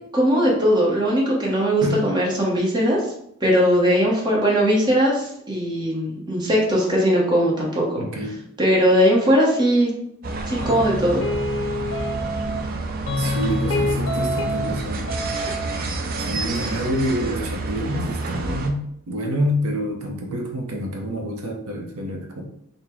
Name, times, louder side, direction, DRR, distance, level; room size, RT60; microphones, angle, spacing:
voice 1, 0.1-3.0 3.4-8.0 8.6-9.9 10.5-11.2, equal, 20° right, -3 dB, 0.8 m, -19 dB
voice 2, 8.0-8.4 13.2-15.0 16.2-22.4, equal, 85° right, 1 dB, 0.7 m, -27 dB
sound 1, 10.2-18.7, right 2 dB, 40° right, 0.4 m, -29 dB
sound 2, 10.6-12.7 13.1-14.8 15.1-15.7, left 1 dB, 65° left, 0.5 m, -26 dB
3.9 x 2.1 x 4.3 m, 0.73 s
head